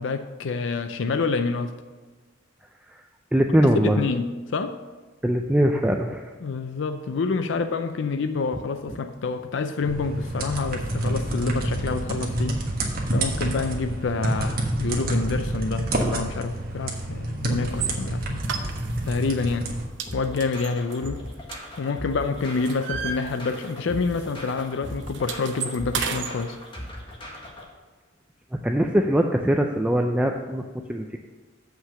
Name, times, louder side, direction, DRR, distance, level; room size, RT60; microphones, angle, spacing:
voice 1, 0.0-1.8 3.8-4.8 6.4-12.6 13.1-18.4 19.0-19.7 20.1-21.3 21.8-26.6, left 4 dB, 65° left, 0.4 m, -27 dB
voice 2, 3.3-4.0 5.2-6.3 28.6-30.6 30.9-31.2, equal, 5° right, 0.4 m, -22 dB
sound 1, 9.8-19.9, right 1 dB, 50° right, 1.4 m, -28 dB
sound 2, 17.7-17.9 18.4-19.2 19.5-19.7 20.0-22.1 22.4-23.9 24.1-24.3 24.6-26.3, right 7 dB, 65° right, 0.8 m, -32 dB
sound 3, 20.1-27.7, equal, 25° left, 1.5 m, -39 dB
7.7 x 5.8 x 6.7 m
head